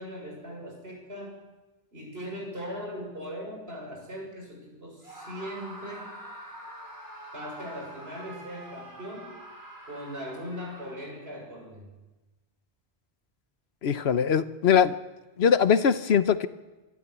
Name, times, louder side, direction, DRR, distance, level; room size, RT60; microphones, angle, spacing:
voice 1, 0.0-1.4 1.9-6.1 7.3-9.4 9.9-11.9, equal, 70° right, 0 dB, 7.0 m, -39 dB
Screaming, 5.0-11.3, right 1 dB, 20° left, 7.7 m, -45 dB
voice 2, 13.8-14.9 15.4-16.5, left 7 dB, 85° left, 12 dB, 1.1 m, -21 dB
25.5 x 12.5 x 8.3 m, 1.1 s
omnidirectional pair, 1.1 m